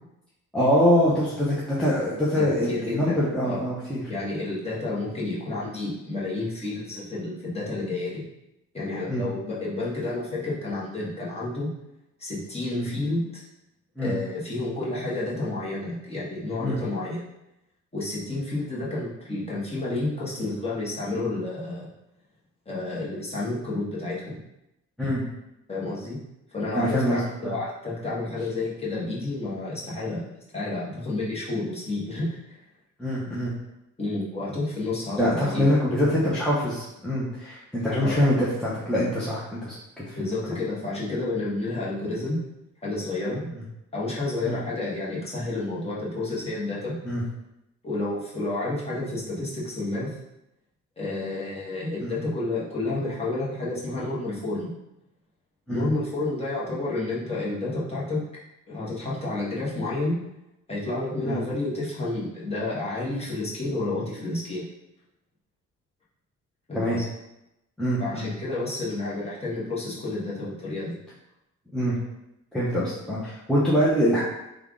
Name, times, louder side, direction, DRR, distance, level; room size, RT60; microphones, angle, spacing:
voice 1, 0.5-4.0 9.1-9.2 12.7-12.9 14.0-14.1 16.6-16.8 25.0-25.2 26.7-27.5 33.0-33.5 35.2-40.2 43.5-43.6 44.4-44.6 47.0-47.2 52.0-52.1 55.7-55.9 61.2-61.4 66.7-67.0 67.8-68.3 71.7-72.0 72.5-74.2, equal, ahead, -8 dB, 0.7 m, -24 dB
voice 2, 2.3-3.6 4.1-8.2 8.7-11.7 12.2-13.4 14.0-17.2 17.9-21.9 22.7-24.4 25.7-26.2 26.5-32.6 34.0-35.6 38.0-38.4 40.1-42.4 42.8-43.5 43.9-47.0 47.8-50.2 51.0-54.7 55.7-58.2 58.7-60.2 60.7-64.6 66.7-67.1 68.0-71.0, left 2 dB, 20° left, -7 dB, 1.3 m, -30 dB
3.4 x 2.4 x 3.6 m, 0.89 s
cardioid pair, 90°, 30 cm